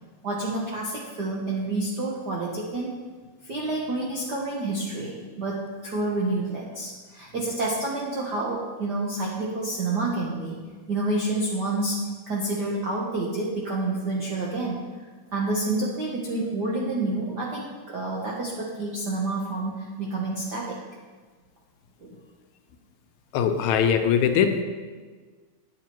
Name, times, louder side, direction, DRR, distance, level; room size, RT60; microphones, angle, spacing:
voice 1, 0.2-2.9 3.4-10.6 10.9-20.8 22.0-22.1, right 2 dB, 65° right, -4 dB, 1.0 m, -29 dB
voice 2, 23.3-24.6, left 7 dB, 80° left, 7 dB, 2.0 m, -21 dB
9.1 x 8.2 x 4.5 m, 1.4 s
omnidirectional pair, 3.3 m